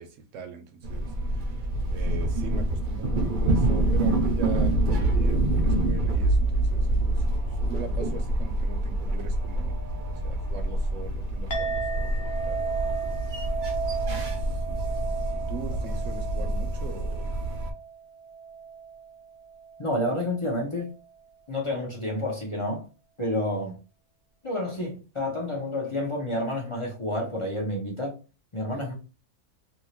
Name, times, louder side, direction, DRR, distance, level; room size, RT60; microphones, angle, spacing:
voice 1, 0.0-9.8 10.2-12.6 14.3-14.9 15.3-17.3, right 4 dB, 70° right, 1.0 m, -41 dB
sound 1, 0.8-17.7, right 1 dB, 45° right, 0.7 m, -26 dB
Chink clink, 11.5-20.2, right 5 dB, 80° left, 1.2 m, -35 dB
voice 2, 19.8-20.9 21.5-22.9 23.2-23.8 24.4-28.2 28.5-28.9, left 1 dB, 30° left, 0.7 m, -29 dB
2.8 x 2.8 x 3.0 m
omnidirectional pair, 1.4 m